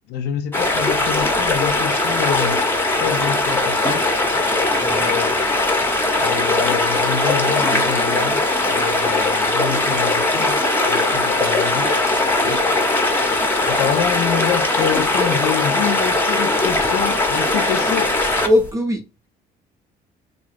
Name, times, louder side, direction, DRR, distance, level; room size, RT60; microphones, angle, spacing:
voice 1, 0.1-2.7 3.0-4.0 5.0-5.4 6.2-11.9 12.4-12.7 13.7-18.2, left 9 dB, 75° left, 0.5 m, -27 dB
sound 1, 0.5-18.7, left 2 dB, 15° left, 0.7 m, -19 dB
voice 2, 4.7-5.1 18.4-19.1, left 1 dB, 20° right, 0.5 m, -20 dB
3.8 x 2.3 x 3.2 m
cardioid pair, 110°, 17 cm